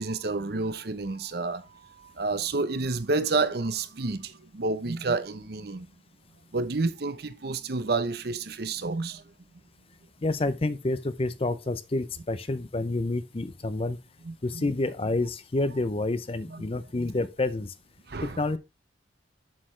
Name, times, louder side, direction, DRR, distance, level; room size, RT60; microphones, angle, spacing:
voice 1, 0.0-5.9 6.5-9.2 14.2-14.7 16.5-16.7 18.1-18.4, right 3 dB, 60° right, 0.8 m, -30 dB
voice 2, 10.2-14.0 14.4-17.7 18.2-18.6, left 2 dB, 30° left, 0.6 m, -28 dB
7.5 x 6.6 x 3.2 m
head